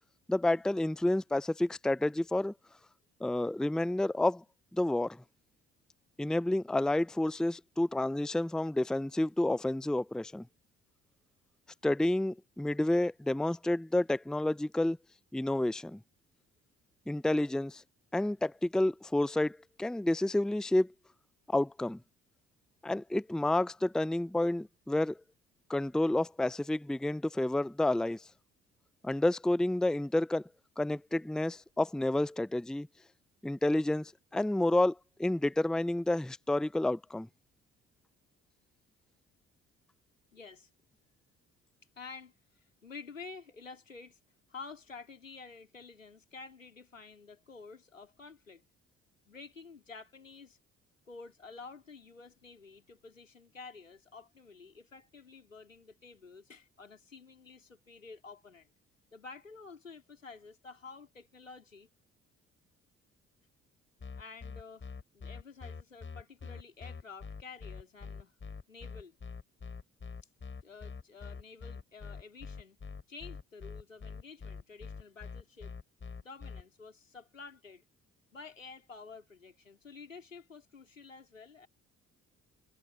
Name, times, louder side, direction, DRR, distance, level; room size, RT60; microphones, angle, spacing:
voice 1, 0.3-2.5 3.2-4.4 4.7-5.2 6.2-10.4 11.8-15.0 15.3-16.0 17.1-17.8 18.1-20.9 21.5-22.0 22.8-25.2 25.7-28.2 29.0-30.4 30.8-32.9 33.4-37.3, left 1 dB, ahead, 0.7 m, -30 dB
voice 2, 40.3-40.7 42.0-44.2 44.5-48.6 49.3-50.6 51.1-58.7 59.1-61.9 64.2-68.3 68.7-69.2 70.6-72.8 73.1-75.7 76.2-77.8 78.3-81.7, left 4 dB, 85° left, 3.7 m, -50 dB
sound 1, 64.0-76.6, left 5 dB, 30° left, 5.9 m, -44 dB
figure-of-eight pair, 45°, 38 cm